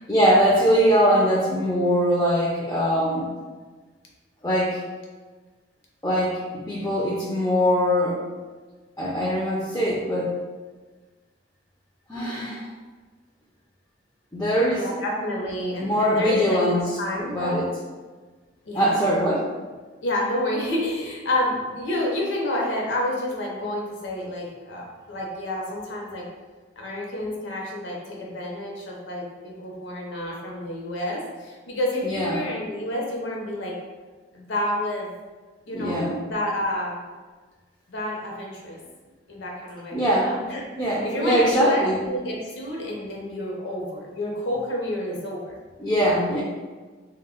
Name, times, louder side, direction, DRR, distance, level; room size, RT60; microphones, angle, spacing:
voice 1, 0.1-3.3 4.4-4.8 6.0-8.2 9.0-10.4 12.1-12.6 14.3-14.8 15.8-16.8 17.3-17.7 18.7-19.4 32.0-32.4 35.7-36.2 39.9-40.3 40.8-42.0 45.8-46.4, equal, 15° left, -6 dB, 0.3 m, -22 dB
voice 2, 14.7-17.6 18.6-19.1 20.0-26.3 26.8-33.8 34.3-35.1 35.7-37.0 37.9-38.8 39.3-45.5, left 1 dB, 80° left, -2 dB, 0.6 m, -29 dB
2.1 x 2.0 x 3.4 m, 1.3 s
head